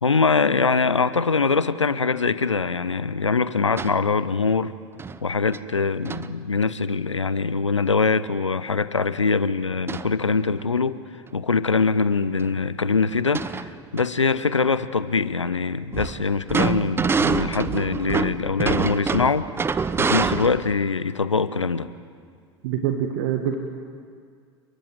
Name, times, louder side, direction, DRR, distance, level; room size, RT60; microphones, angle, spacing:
voice 1, 0.0-4.7 5.2-11.0 11.3-19.5 19.8-21.9, left 4 dB, 85° left, 15 dB, 1.0 m, -23 dB
sound 1, 3.8-4.0 5.0-5.2 5.5-5.6 6.0-6.3 9.9-10.1 10.6-10.7 11.9-12.0 12.4-12.5 13.1-14.0 15.9-20.7, right 5 dB, 15° right, 0.8 m, -26 dB
voice 2, 22.6-23.6, right 9 dB, 55° right, 5 dB, 1.9 m, -25 dB
29.5 x 22.5 x 7.9 m, 2.1 s
figure-of-eight pair, 80°, 15 cm